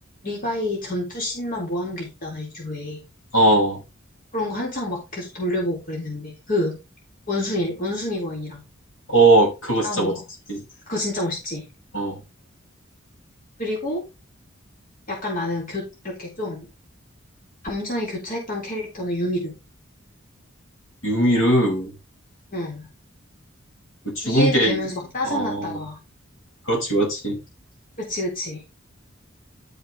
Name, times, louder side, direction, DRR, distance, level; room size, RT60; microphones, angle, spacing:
voice 1, 0.2-3.0 4.3-6.8 7.3-8.6 9.8-10.2 10.9-11.7 13.6-14.0 15.1-16.6 17.6-19.5 22.5-22.9 24.2-26.0 28.0-28.6, left 1 dB, 45° left, 3.8 m, -28 dB
voice 2, 3.3-3.8 9.1-10.2 10.5-10.6 11.9-12.2 21.0-21.9 24.0-24.8 25.2-25.8 26.7-27.4, right 1 dB, 75° left, 5.1 m, -19 dB
12.5 x 5.2 x 3.8 m
head